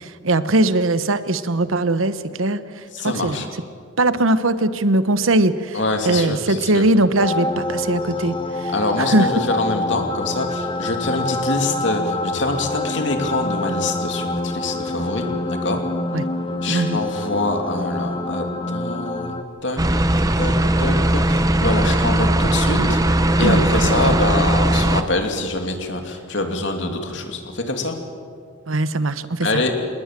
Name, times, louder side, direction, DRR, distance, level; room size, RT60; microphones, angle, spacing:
voice 1, 0.0-2.6 3.0-3.5 4.0-5.8 6.0-8.7 9.1-9.3 16.1-16.2 16.7-17.0 22.8-22.9 23.4-24.1 28.7-29.5, right 2 dB, 90° right, 12 dB, 1.1 m, -20 dB
voice 2, 2.9-3.5 5.7-6.8 8.7-15.8 16.6-19.8 20.1-20.5 20.8-23.0 23.4-28.0 29.4-29.7, left 2 dB, 65° left, 4 dB, 2.9 m, -25 dB
sound 1, 7.2-19.4, left 2 dB, 25° left, 1.1 m, -26 dB
sound 2, 19.8-25.0, right 1 dB, 15° right, 0.9 m, -18 dB
27.5 x 20.0 x 7.6 m, 2.2 s
head